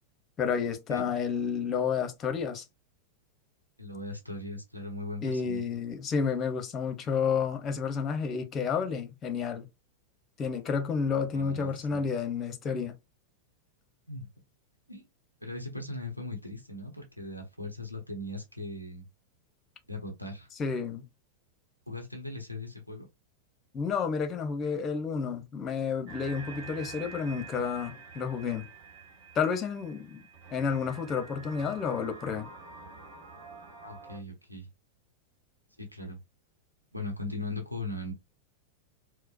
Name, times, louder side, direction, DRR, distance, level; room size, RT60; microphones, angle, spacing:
voice 1, 0.4-2.6 5.2-9.7 10.4-12.9 20.6-21.1 23.7-28.7 29.3-30.2 30.5-32.5, left 6 dB, 25° left, 0.7 m, -30 dB
voice 2, 3.8-5.6 11.3-12.0 14.1-14.3 14.9-15.1 15.4-19.1 19.9-20.5 21.9-23.1 33.8-34.7 35.8-36.2 36.9-38.1, left 2 dB, 90° right, 0.9 m, -39 dB
sound 1, 26.1-34.2, right 4 dB, 50° right, 1.5 m, -47 dB
4.4 x 2.1 x 2.4 m
figure-of-eight pair, 90°, 0 cm